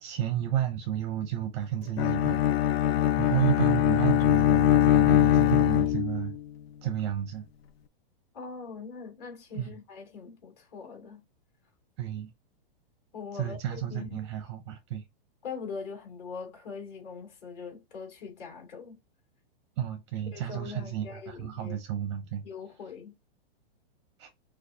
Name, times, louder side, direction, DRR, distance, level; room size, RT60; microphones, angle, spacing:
voice 1, 0.0-2.5 3.2-6.4 6.8-7.5 9.5-9.8 12.0-12.3 13.3-15.0 19.8-22.4 24.2-24.3, right 11 dB, 30° right, 0.5 m, -31 dB
Bowed string instrument, 2.0-6.4, left 12 dB, 85° left, 0.6 m, -22 dB
voice 2, 8.3-11.2 13.1-14.2 15.4-19.0 20.3-21.8 22.4-23.1, left 5 dB, 40° left, 2.7 m, -42 dB
6.3 x 2.4 x 2.7 m
hypercardioid pair, 160°, 30 cm